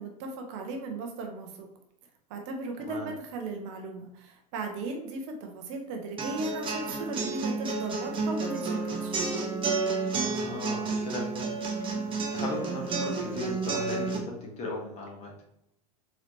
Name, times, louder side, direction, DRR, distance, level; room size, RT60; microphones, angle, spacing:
voice 1, 0.0-1.7 2.3-9.2, right 2 dB, 50° right, 3 dB, 0.8 m, -37 dB
voice 2, 2.8-3.1 10.2-15.3, left 2 dB, 35° left, -1 dB, 1.4 m, -38 dB
sound 1, 6.2-14.2, right 4 dB, 25° right, 0.9 m, -31 dB
4.0 x 3.0 x 3.0 m, 0.78 s
figure-of-eight pair, 85°, 20 cm